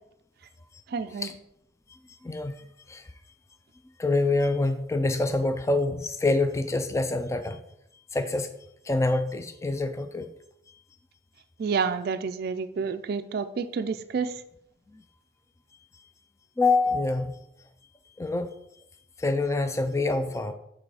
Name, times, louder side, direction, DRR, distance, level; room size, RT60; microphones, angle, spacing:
voice 1, 0.9-1.3 11.6-14.4, right 5 dB, 55° right, 9 dB, 0.4 m, -29 dB
voice 2, 4.0-7.6 8.1-8.5 8.9-10.3 16.6-17.4 18.2-18.5 19.2-20.5, left 2 dB, 15° left, 8 dB, 0.4 m, -26 dB
7.5 x 3.9 x 4.8 m, 0.77 s
head